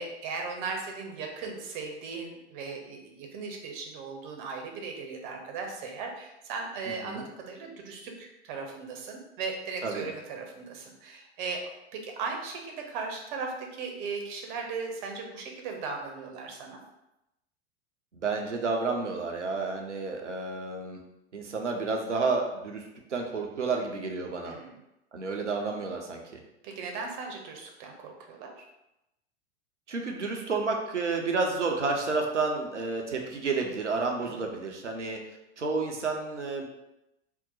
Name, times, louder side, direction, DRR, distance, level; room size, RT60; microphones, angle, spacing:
voice 1, 0.0-16.8 24.4-24.8 26.6-28.6 34.2-34.3, right 4 dB, 45° right, 2 dB, 0.7 m, -37 dB
voice 2, 6.9-7.3 9.8-10.1 18.1-21.0 21.3-24.5 25.1-26.4 29.9-35.2 35.6-36.6, right 4 dB, 90° right, 2 dB, 0.5 m, -30 dB
2.7 x 2.1 x 3.9 m, 0.89 s
figure-of-eight pair, 85°, 35 cm